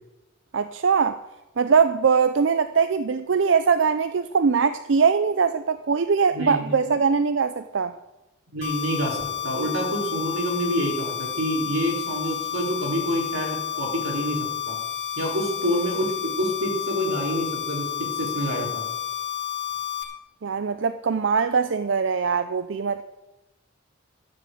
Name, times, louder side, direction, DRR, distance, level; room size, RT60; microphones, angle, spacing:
voice 1, 0.5-1.2 1.6-7.9 20.4-23.0, right 5 dB, 60° right, 0.5 m, -22 dB
voice 2, 6.3-6.7 8.5-14.8 15.2-18.8, equal, 90° right, 3.8 m, -27 dB
sound 1, 8.6-20.0, left 9 dB, 35° left, 2.3 m, -31 dB
13.0 x 7.0 x 7.7 m
head